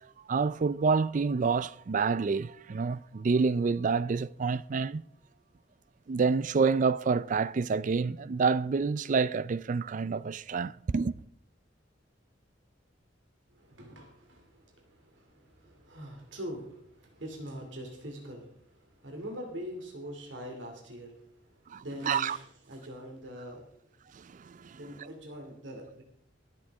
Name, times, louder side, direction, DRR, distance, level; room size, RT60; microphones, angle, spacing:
voice 1, 0.3-5.0 6.1-11.1 21.7-22.4 24.2-24.8, right 5 dB, 45° right, 0.4 m, -28 dB
voice 2, 13.5-23.8 24.7-26.0, equal, 80° right, 2.5 m, -43 dB
23.0 x 7.7 x 3.5 m
head